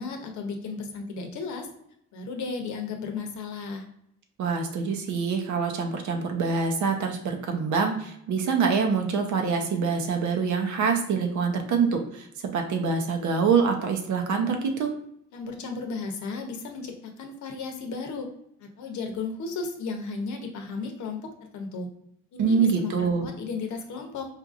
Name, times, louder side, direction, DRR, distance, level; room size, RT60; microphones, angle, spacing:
voice 1, 0.0-1.7 2.1-3.8 15.3-18.3 18.6-21.9 22.3-22.9 23.2-24.3, left 4 dB, 70° left, 4 dB, 0.8 m, -34 dB
voice 2, 4.4-12.3 12.5-14.9 22.4-23.3, right 5 dB, 70° right, 4 dB, 0.8 m, -25 dB
4.5 x 2.5 x 2.4 m, 0.74 s
cardioid pair, 90°, 30 cm